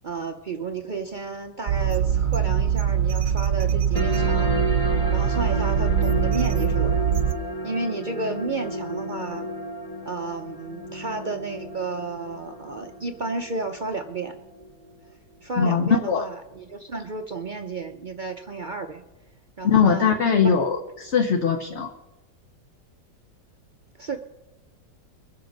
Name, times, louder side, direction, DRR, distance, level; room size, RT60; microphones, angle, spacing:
voice 1, 0.0-4.5 5.1-7.0 7.6-9.4 10.0-14.3 15.4-19.0 19.6-20.7 24.0-24.2, right 3 dB, 75° right, 5 dB, 0.4 m, -32 dB
sound 1, 1.7-7.3, right 9 dB, 60° right, 1.0 m, -23 dB
sound 2, 3.9-14.9, left 1 dB, 20° left, 2.2 m, -32 dB
voice 2, 15.6-16.2 19.6-21.9, left 6 dB, 45° left, 4 dB, 1.1 m, -21 dB
23.0 x 7.8 x 5.2 m, 1.0 s
omnidirectional pair, 1.9 m